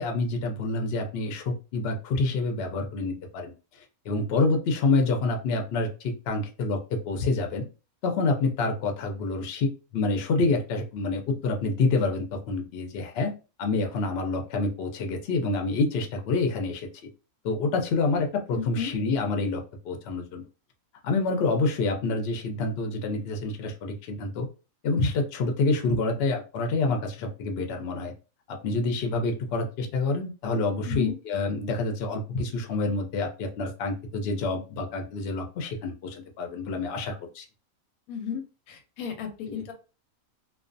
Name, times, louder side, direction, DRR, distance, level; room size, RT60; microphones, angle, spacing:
voice 1, 0.0-3.5 4.1-7.6 8.0-13.3 13.6-16.9 17.4-20.4 21.0-24.5 24.8-28.1 28.5-37.5 39.5-39.7, left 3 dB, 60° left, 3 dB, 0.7 m, -27 dB
voice 2, 18.5-18.9 30.8-31.1 38.1-38.4 38.7-39.7, left 8 dB, 85° left, 5 dB, 1.1 m, -33 dB
2.3 x 2.2 x 2.5 m, 0.32 s
omnidirectional pair, 1.5 m